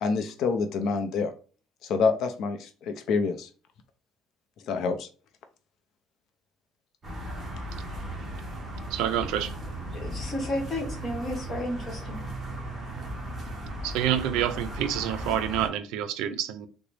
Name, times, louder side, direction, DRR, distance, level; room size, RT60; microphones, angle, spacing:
voice 1, 0.0-1.3 1.8-3.5 4.7-5.1, left 4 dB, 60° left, 0.5 m, -27 dB
sound 1, 7.0-15.7, right 1 dB, 15° right, 1.0 m, -36 dB
voice 2, 8.9-9.5 13.8-16.7, right 10 dB, 85° right, 0.4 m, -28 dB
voice 3, 9.9-12.2, left 1 dB, 30° left, 1.1 m, -32 dB
3.9 x 2.1 x 3.2 m
cardioid pair, 150°, 0 cm